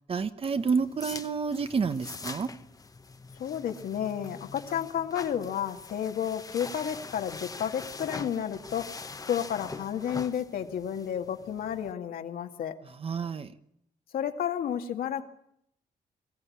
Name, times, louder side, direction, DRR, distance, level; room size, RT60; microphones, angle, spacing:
voice 1, 0.1-2.5 12.8-13.5, right 5 dB, 40° right, 11 dB, 1.1 m, -29 dB
sound 1, 0.6-11.9, left 4 dB, 25° left, 1.0 m, -43 dB
voice 2, 3.4-8.8 9.3-12.8 14.1-15.3, left 9 dB, 75° left, 5 dB, 2.0 m, -31 dB
22.5 x 15.0 x 8.6 m, 0.74 s
cardioid pair, 110°, 15 cm